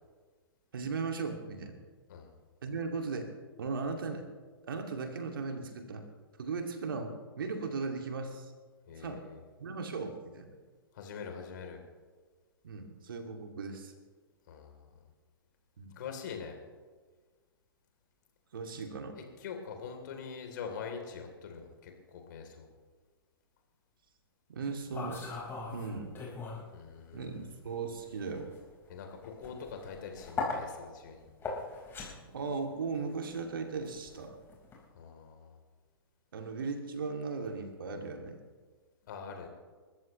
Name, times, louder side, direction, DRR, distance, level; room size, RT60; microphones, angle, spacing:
voice 1, 0.7-1.8 2.6-3.3 3.6-4.3 4.7-6.0 6.4-8.5 9.0-9.2 9.6-10.5 12.6-13.9 15.8-15.9 18.5-19.2 24.5-25.3 25.7-26.2 27.1-28.5 32.3-34.4 36.3-38.4, right 4 dB, 65° right, 4 dB, 2.3 m, -37 dB
voice 2, 8.9-9.4 10.9-11.8 14.5-14.9 15.9-16.6 19.1-22.7 26.7-27.5 28.9-31.3 34.9-35.6 39.1-39.5, left 6 dB, 55° left, 3 dB, 3.4 m, -44 dB
sound 1, 24.6-26.7 27.0-34.8, left 3 dB, 20° left, 4.7 m, -41 dB
29.0 x 14.5 x 3.2 m, 1.4 s
figure-of-eight pair, 105°, 12 cm